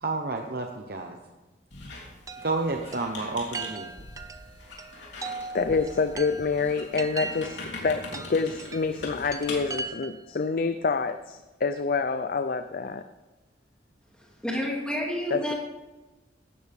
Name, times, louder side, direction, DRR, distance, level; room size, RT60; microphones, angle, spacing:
voice 1, 0.0-1.2 2.4-3.9, right 3 dB, 55° right, 3 dB, 1.0 m, -30 dB
Squeak, 1.7-9.8, left 2 dB, 75° left, 3.4 m, -42 dB
Chime, 2.3-10.4, right 3 dB, 20° right, 0.6 m, -40 dB
voice 2, 5.5-13.1 15.3-15.5, left 4 dB, 50° left, 10 dB, 0.5 m, -27 dB
voice 3, 14.4-15.5, equal, 5° left, -3 dB, 2.6 m, -29 dB
17.0 x 12.5 x 3.6 m, 1.1 s
head